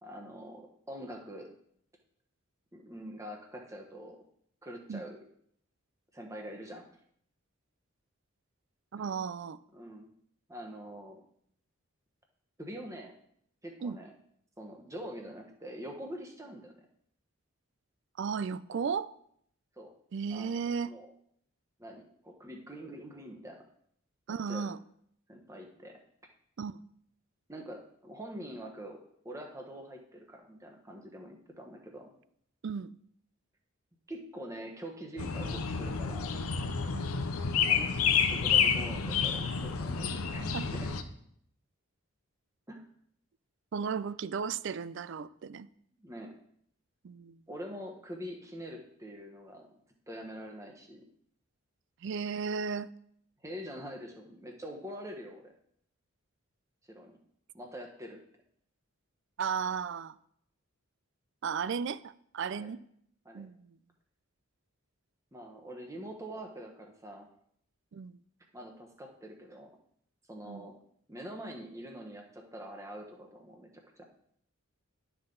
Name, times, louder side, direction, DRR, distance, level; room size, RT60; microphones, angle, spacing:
voice 1, 0.0-1.5 2.7-4.2 4.6-5.2 6.1-6.9 9.7-10.1 10.5-11.2 12.6-13.1 13.6-14.1 14.6-16.9 18.7-18.8 19.8-19.9 20.3-21.1 21.8-23.6 24.3-24.7 25.3-26.0 27.5-29.0 29.2-32.1 34.1-36.3 37.7-40.9 42.7-42.8 46.0-46.3 47.5-49.7 50.1-51.0 53.4-55.5 56.9-57.2 57.5-58.2 62.5-62.7 63.2-63.4 65.3-67.3 68.5-69.7 70.3-70.8 71.1-73.7 74.0-74.1, equal, 15° right, 1.1 m, -44 dB
voice 2, 8.9-9.6 13.8-14.0 18.2-19.1 20.1-20.9 24.3-24.8 26.6-26.8 32.6-33.0 36.9-37.1 40.5-40.6 43.7-45.7 47.0-47.4 52.0-52.9 59.4-60.2 61.4-62.8 63.3-63.8 67.9-68.2 70.5-70.7, right 6 dB, 55° right, 0.3 m, -35 dB
sound 1, 35.2-41.0, left 6 dB, 85° left, 0.7 m, -29 dB
11.5 x 5.7 x 3.9 m
head